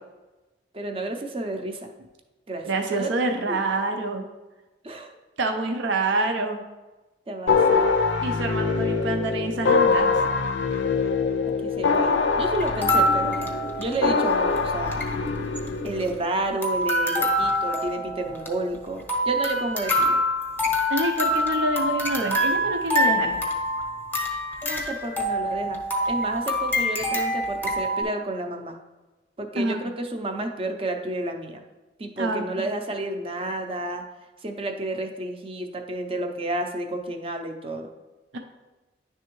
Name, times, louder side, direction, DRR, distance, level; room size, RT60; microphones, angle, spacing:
voice 1, 0.7-1.9 2.5-3.1 3.5-3.7 4.8-5.2 7.3-7.9 11.4-13.5 13.8-15.0 15.8-20.2 24.6-25.8 26.1-28.8 29.4-31.6 32.0-34.0 34.4-37.9, right 2 dB, 30° right, 4 dB, 0.6 m, -31 dB
voice 2, 2.6-4.2 5.4-6.6 8.2-10.2 20.9-23.4 29.6-29.8 32.2-32.7 38.3-38.4, right 2 dB, 80° right, 4 dB, 0.6 m, -27 dB
sound 1, 7.5-16.2, left 4 dB, 70° left, 0.4 m, -24 dB
sound 2, 12.6-14.3 14.6-14.7 14.8-15.1 15.6-16.3 16.6-28.0, equal, 10° left, 0.7 m, -25 dB
10.0 x 3.4 x 3.0 m, 1.1 s
head